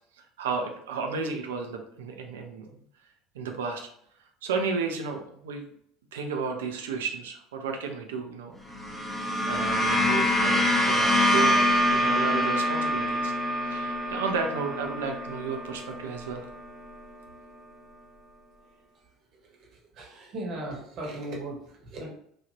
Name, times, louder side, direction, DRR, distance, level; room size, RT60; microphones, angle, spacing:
voice 1, 0.2-2.8 3.3-3.9 4.4-5.6 6.1-8.6 9.4-11.6 11.9-13.3 13.6-16.5, right 5 dB, 70° right, 4 dB, 0.4 m, -33 dB
sound 1, 8.7-17.1, equal, 10° left, 0.6 m, -26 dB
voice 2, 20.0-21.6 21.9-22.1, right 1 dB, 45° right, -2 dB, 0.9 m, -36 dB
3.3 x 2.3 x 2.7 m, 0.68 s
figure-of-eight pair, 65°, 0 cm